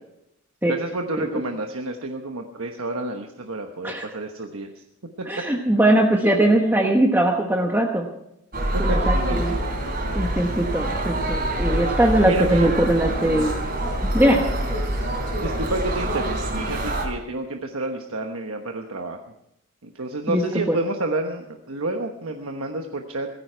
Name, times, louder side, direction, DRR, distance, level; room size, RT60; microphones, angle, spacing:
voice 1, 0.7-4.7 8.7-10.2 12.2-12.7 15.4-19.2 19.8-23.3, right 2 dB, 90° right, 4 dB, 1.2 m, -30 dB
voice 2, 5.2-8.1 8.8-9.5 10.1-13.5 14.1-14.5 20.3-20.8, right 1 dB, 10° right, 1 dB, 1.1 m, -20 dB
sound 1, 8.5-17.1, right 1 dB, 45° right, 3.4 m, -25 dB
17.0 x 15.0 x 4.6 m, 0.81 s
head